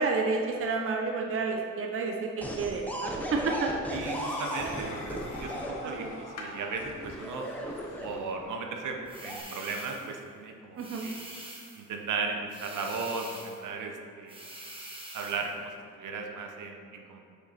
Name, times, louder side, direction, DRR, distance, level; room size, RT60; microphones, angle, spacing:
voice 1, 0.0-3.7 4.6-4.8 5.8-6.2 10.8-11.1, right 4 dB, 45° right, 1 dB, 0.7 m, -30 dB
sound 1, 2.4-5.7 6.8-8.4 9.1-9.4, equal, 5° left, 0.9 m, -36 dB
voice 2, 3.9-7.4 8.0-11.2 11.8-14.4 15.1-15.7 16.0-17.2, right 4 dB, 70° right, 3 dB, 1.0 m, -36 dB
sound 2, 4.0-8.3, left 2 dB, 75° left, 1.2 m, -44 dB
sound 3, 9.1-10.2 10.8-11.9 12.5-13.7 14.3-15.5, right 1 dB, 15° right, 1.3 m, -45 dB
6.6 x 6.0 x 4.3 m, 2.5 s
cardioid pair, 120°, 32 cm